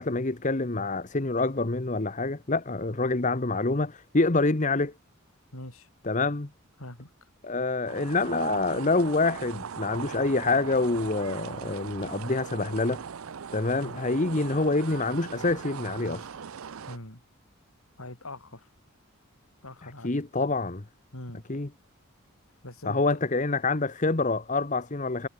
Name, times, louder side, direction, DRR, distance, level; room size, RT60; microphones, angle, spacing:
voice 1, 0.0-4.9 6.0-6.5 7.4-13.0 13.5-16.3 19.8-20.8 21.5-21.7 22.8-25.3, left 3 dB, 35° left, 1.1 m, -26 dB
voice 2, 5.5-5.9 6.8-7.3 13.7-14.0 16.9-17.2 18.0-18.7 19.6-20.2 21.1-21.4 22.6-23.2, left 1 dB, 90° left, 5.9 m, -42 dB
sound 1, 7.9-17.0, right 6 dB, 85° right, 0.6 m, -39 dB
head